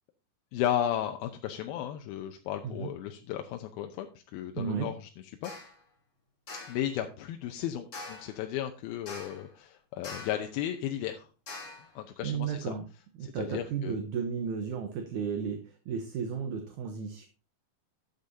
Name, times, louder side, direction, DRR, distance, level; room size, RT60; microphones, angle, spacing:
voice 1, 0.5-4.9 5.4-5.5 6.7-11.3 12.0-12.7 13.2-14.0, left 11 dB, 90° left, 5 dB, 2.5 m, -34 dB
voice 2, 4.6-4.9 12.2-12.9 13.2-17.3, right 6 dB, 70° right, 6 dB, 2.0 m, -34 dB
sound 1, 5.4-5.8 6.5-6.9 7.9-8.4 9.1-9.5 10.0-10.5 11.5-11.9, left 3 dB, 35° left, 2.9 m, -43 dB
12.0 x 8.1 x 2.7 m, 0.33 s
omnidirectional pair, 4.3 m